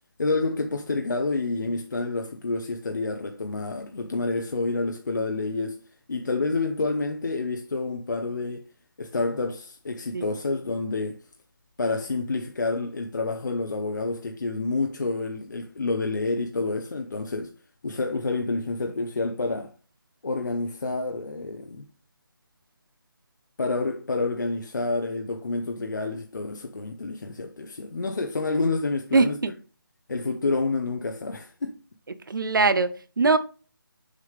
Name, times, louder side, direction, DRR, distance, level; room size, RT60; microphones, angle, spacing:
voice 1, 0.2-5.8 6.1-8.6 9.0-11.2 11.8-17.5 17.8-19.7 20.2-21.8 23.6-29.4 30.1-31.8, left 3 dB, 55° left, 0.7 m, -28 dB
voice 2, 29.1-29.5 32.3-33.4, right 3 dB, 65° right, 0.8 m, -22 dB
6.5 x 5.3 x 3.4 m
figure-of-eight pair, 175°, 12 cm